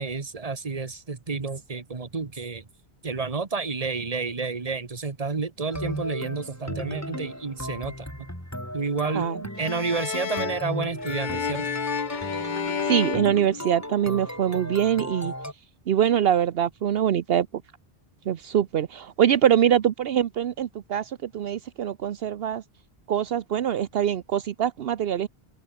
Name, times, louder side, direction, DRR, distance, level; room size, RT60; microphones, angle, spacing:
voice 1, 0.0-2.6 3.0-8.3 8.7-9.3 9.6-11.7, right 4 dB, 35° right, 1.5 m, -30 dB
sound 1, 5.7-15.5, equal, 15° left, 6.4 m, -36 dB
sound 2, 9.6-14.2, left 6 dB, 50° left, 1.0 m, -31 dB
voice 2, 12.8-15.3 15.9-17.5 18.3-22.6 23.1-25.3, right 10 dB, 70° right, 0.9 m, -24 dB
open air
omnidirectional pair, 1.0 m